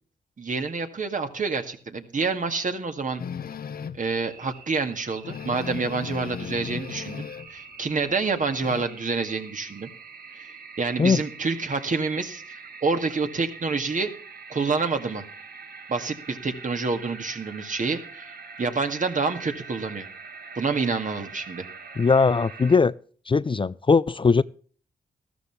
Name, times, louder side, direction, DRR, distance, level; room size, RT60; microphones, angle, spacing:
voice 1, 0.4-3.2 3.9-9.9 10.3-10.5 10.8-14.1 14.5-15.2 15.9-20.1 20.6-21.7, right 4 dB, 50° right, 2.0 m, -28 dB
sound 1, 3.2-4.1 4.6-4.7 4.9-5.0 5.2-7.6 7.9-8.8, left 7 dB, 65° left, 0.8 m, -36 dB
sound 2, 4.2-22.8, right 5 dB, 70° right, 1.5 m, -44 dB
voice 2, 22.0-22.9 23.3-24.4, left 4 dB, 30° left, 0.5 m, -20 dB
13.5 x 13.5 x 3.3 m
cardioid pair, 50°, 16 cm